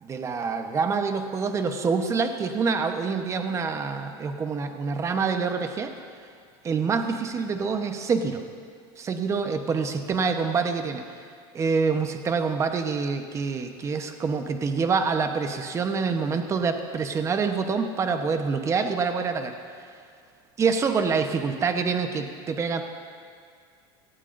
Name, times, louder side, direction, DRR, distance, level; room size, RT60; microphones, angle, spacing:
voice 1, 0.0-5.9 6.6-8.4 9.0-11.0 11.5-19.5 20.6-22.8, right 5 dB, 25° right, 6 dB, 1.0 m, -26 dB
18.0 x 14.0 x 2.6 m, 2.2 s
supercardioid pair, 130°, 11 cm